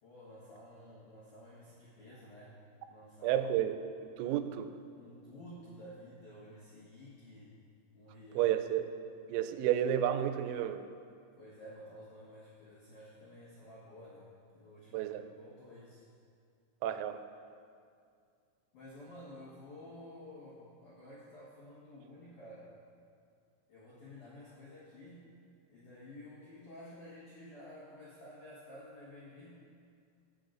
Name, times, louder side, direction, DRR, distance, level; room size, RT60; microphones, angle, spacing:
voice 1, 0.0-2.6 2.9-3.5 4.2-4.4 4.9-7.6 7.9-8.6 11.4-16.0 18.7-22.7 23.7-25.3 25.7-29.7, left 1 dB, 80° left, -8 dB, 1.7 m, -52 dB
voice 2, 3.2-3.8 4.0-4.7 8.4-8.8 9.3-10.8 14.9-15.2 16.8-17.2, right 11 dB, 90° right, 9 dB, 3.3 m, -31 dB
20.0 x 6.8 x 2.5 m, 2.3 s
omnidirectional pair, 6.0 m